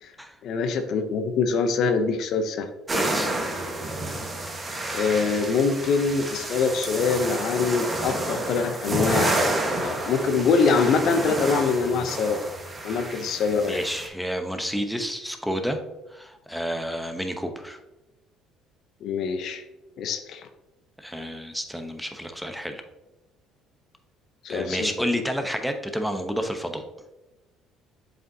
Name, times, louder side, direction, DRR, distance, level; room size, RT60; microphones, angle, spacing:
voice 1, 0.4-2.7 4.9-9.4 9.8-12.4 12.8-13.8 19.0-19.6 20.0-20.5 24.4-24.9, left 5 dB, 65° left, 7 dB, 0.6 m, -24 dB
voice 2, 2.9-3.3 13.7-15.8 16.1-17.8 21.0-22.8 24.5-26.8, equal, ahead, 5 dB, 0.9 m, -30 dB
sound 1, 2.9-14.1, right 1 dB, 25° right, 1.3 m, -29 dB
7.5 x 5.0 x 2.7 m, 1.0 s
supercardioid pair, 70°, 0 cm